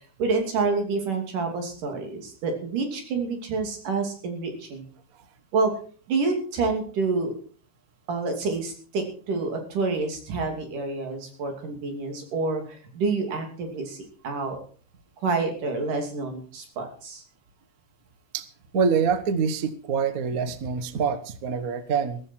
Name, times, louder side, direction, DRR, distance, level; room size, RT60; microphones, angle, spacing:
voice 1, 0.2-4.9 5.5-5.7 6.1-7.3 8.1-14.6 15.2-17.2, right 4 dB, 80° right, 4 dB, 4.5 m, -28 dB
voice 2, 18.7-22.2, right 6 dB, 65° right, 11 dB, 0.8 m, -25 dB
15.0 x 14.5 x 4.6 m, 0.42 s
omnidirectional pair, 3.6 m